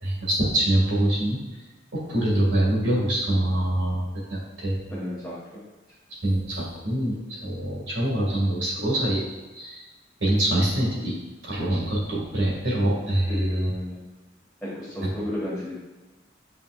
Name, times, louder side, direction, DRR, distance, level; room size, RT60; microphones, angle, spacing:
voice 1, 0.0-1.4 1.9-4.8 6.1-9.2 9.5-9.9 10.2-11.2 11.4-13.4, right 1 dB, 80° right, -4 dB, 2.1 m, -24 dB
voice 2, 4.9-5.4 13.3-14.1 14.6-15.8, left 1 dB, 5° left, -11 dB, 1.6 m, -32 dB
8.5 x 5.2 x 2.4 m, 1.1 s
head